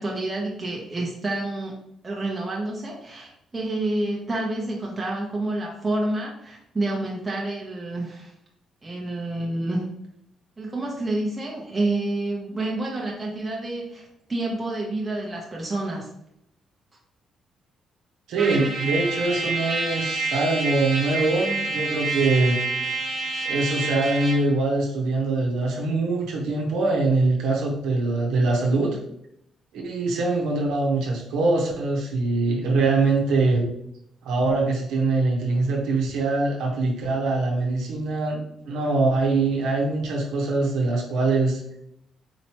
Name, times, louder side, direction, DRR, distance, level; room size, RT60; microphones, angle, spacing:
voice 1, 0.0-1.8 2.0-8.3 8.8-9.9 10.6-16.1, right 2 dB, 20° right, -3 dB, 0.9 m, -28 dB
voice 2, 18.3-22.6 23.4-29.0 29.7-33.7 34.2-41.6, right 3 dB, 85° right, -2 dB, 0.9 m, -23 dB
Trumpet, 18.4-24.5, right 3 dB, 55° right, 1.3 m, -28 dB
4.3 x 3.0 x 3.0 m, 0.76 s
cardioid pair, 90°, 0 cm